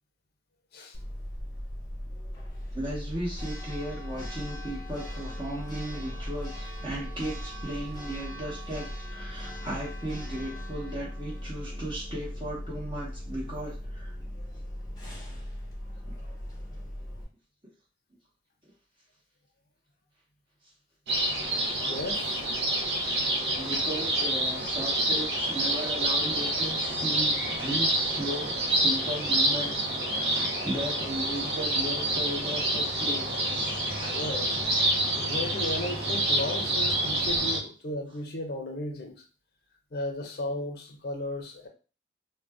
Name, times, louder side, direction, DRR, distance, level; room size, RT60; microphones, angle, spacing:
Church bell, 0.9-17.2, equal, 20° left, 0.7 m, -38 dB
voice 1, 2.7-14.1 16.1-16.2 23.6-34.3 35.4-35.5, right 1 dB, 30° right, -6 dB, 0.9 m, -36 dB
sound 1, 21.1-37.6, right 1 dB, 70° right, 0.7 m, -27 dB
voice 2, 21.8-22.4 34.0-34.6 35.2-39.2 39.9-41.7, left 1 dB, 60° left, 3 dB, 0.5 m, -35 dB
2.5 x 2.1 x 3.4 m, 0.35 s
head